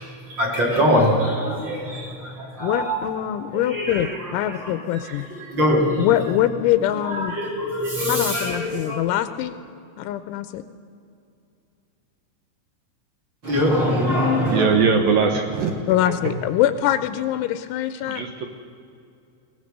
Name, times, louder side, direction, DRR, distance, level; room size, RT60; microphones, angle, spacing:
voice 1, 0.0-3.0 3.5-6.1 7.1-9.0 13.4-14.7, equal, 25° right, -1 dB, 3.1 m, -23 dB
voice 2, 2.6-5.3 6.0-7.4 8.1-9.6 10.0-10.6 15.9-18.2, left 12 dB, 85° left, 11 dB, 3.0 m, -23 dB
voice 3, 14.5-15.7 16.1-16.2 18.1-18.5, right 5 dB, 75° right, 5 dB, 2.0 m, -20 dB
22.5 x 19.0 x 6.7 m, 2.6 s
omnidirectional pair, 5.7 m